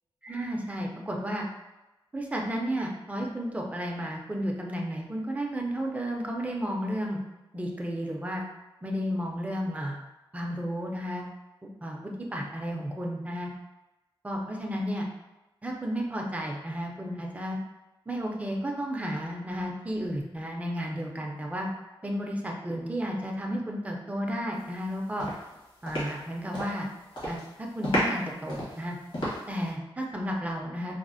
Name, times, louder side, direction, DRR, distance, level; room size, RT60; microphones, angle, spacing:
voice 1, 0.3-1.5 2.1-7.2 7.5-8.4 8.8-10.0 10.3-11.3 11.8-13.5 14.2-15.1 15.6-17.6 18.1-21.7 22.0-25.3 25.8-26.9 27.3-29.0 29.5-31.0, equal, 15° right, 0 dB, 0.4 m, -32 dB
sound 1, 24.7-24.9 25.2-26.8 27.1-27.5 27.8-29.7, equal, 70° left, 1.3 m, -32 dB
4.0 x 2.0 x 2.5 m, 1.0 s
wide cardioid pair, 140°, 9 cm